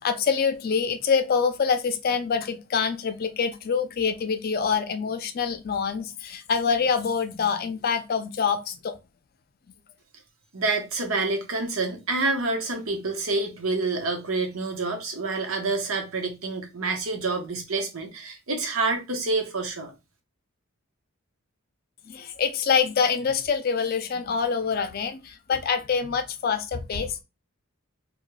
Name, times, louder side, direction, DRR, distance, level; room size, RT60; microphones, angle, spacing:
voice 1, 0.0-9.0 22.1-27.2, left 6 dB, 45° left, 0.4 m, -25 dB
voice 2, 10.5-19.9, right 3 dB, 90° right, 1.0 m, -27 dB
4.9 x 2.3 x 2.2 m
head